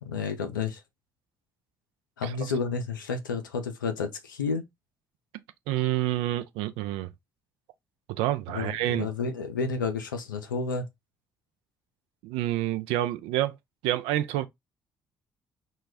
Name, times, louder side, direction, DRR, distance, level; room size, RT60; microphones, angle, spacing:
voice 1, 0.0-0.8 2.2-4.7 8.5-10.9, left 5 dB, 85° left, 0.4 m, -31 dB
voice 2, 5.7-7.1 8.1-9.1 12.2-13.5 13.8-14.5, right 14 dB, 65° right, 0.4 m, -28 dB
2.2 x 2.1 x 3.3 m
figure-of-eight pair, 45°, 10 cm